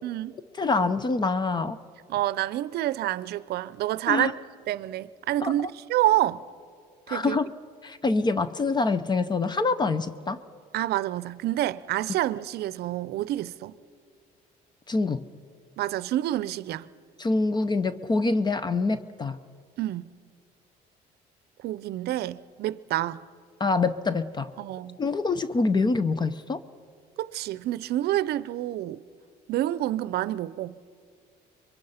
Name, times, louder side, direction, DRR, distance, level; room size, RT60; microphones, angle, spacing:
voice 1, 0.0-0.3 2.1-4.3 4.7-6.4 7.1-7.4 10.7-13.7 15.8-16.9 19.8-20.1 21.6-23.2 24.6-25.0 27.2-29.0 29.5-30.7, right 14 dB, 70° right, 0.6 m, -28 dB
voice 2, 0.6-1.8 4.1-4.3 5.4-5.5 7.1-7.5 7.8-10.4 14.9-15.2 17.2-19.4 23.6-24.5 25.0-26.6, left 3 dB, 25° left, 0.7 m, -25 dB
26.0 x 22.5 x 5.7 m
cardioid pair, 110°, 17 cm